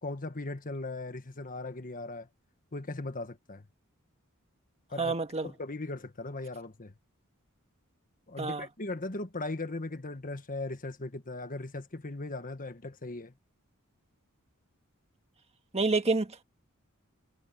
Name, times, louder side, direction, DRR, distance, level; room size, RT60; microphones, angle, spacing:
voice 1, 0.0-2.3 2.7-3.6 4.9-5.1 5.4-6.9 8.3-13.3, left 2 dB, 40° left, 1.5 m, -38 dB
voice 2, 5.0-5.5 8.4-8.6 15.7-16.4, right 3 dB, 30° right, 1.7 m, -28 dB
head